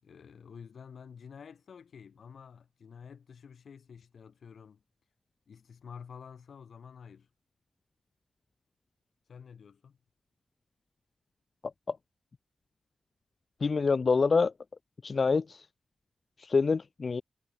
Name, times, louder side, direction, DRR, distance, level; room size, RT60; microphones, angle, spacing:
voice 1, 0.0-4.8 5.5-7.3 9.3-10.0, left 6 dB, 75° left, 6.4 m, -50 dB
voice 2, 13.6-14.5 15.0-15.7 16.4-17.2, left 4 dB, 40° left, 0.5 m, -26 dB
wide cardioid pair, 165°, 0 cm